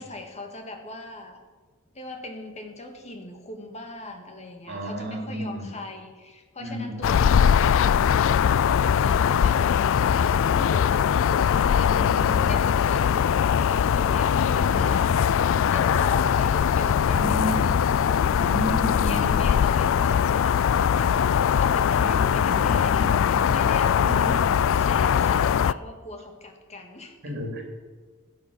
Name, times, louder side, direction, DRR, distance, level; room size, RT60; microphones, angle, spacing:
voice 1, 0.0-1.4 1.9-12.1 12.4-15.1 15.7-18.0 18.7-27.4, left 2 dB, 30° left, 4 dB, 1.9 m, -39 dB
voice 2, 4.7-5.7 6.6-7.1 11.8-12.5 14.4-14.9 17.1-17.7 18.4-19.3 22.0-23.6 24.0-24.4 27.2-27.7, equal, 55° right, 2 dB, 3.0 m, -32 dB
sound 1, 7.0-25.7, left 8 dB, 65° left, 0.3 m, -21 dB
16.0 x 8.5 x 7.0 m, 1.4 s
head